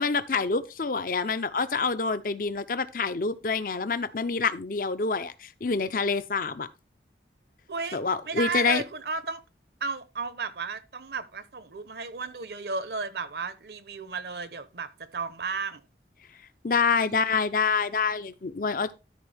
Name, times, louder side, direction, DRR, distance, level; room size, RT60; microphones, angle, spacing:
voice 1, 0.0-6.7 7.9-8.8 16.6-18.9, left 4 dB, 50° left, 0.6 m, -27 dB
voice 2, 7.7-9.4 9.8-15.8 17.0-17.4, right 4 dB, 65° right, 0.9 m, -34 dB
13.0 x 4.7 x 3.4 m
head